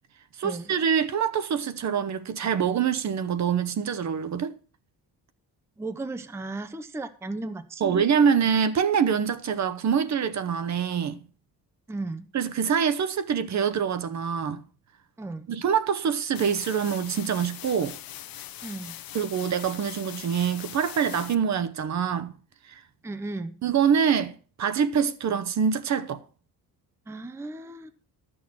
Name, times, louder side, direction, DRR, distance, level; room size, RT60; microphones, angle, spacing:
voice 1, 0.4-4.5 7.8-11.2 12.3-14.6 15.5-18.0 19.1-22.3 22.7-22.8 23.6-24.3 24.6-26.2, right 7 dB, 45° right, 0.9 m, -25 dB
voice 2, 5.8-8.0 11.9-12.3 15.2-15.5 18.6-18.9 23.0-23.6 27.1-27.9, right 2 dB, 5° right, 0.6 m, -35 dB
sound 1, 16.3-21.3, left 12 dB, 65° left, 0.9 m, -41 dB
13.0 x 6.4 x 6.1 m
cardioid pair, 160°, 38 cm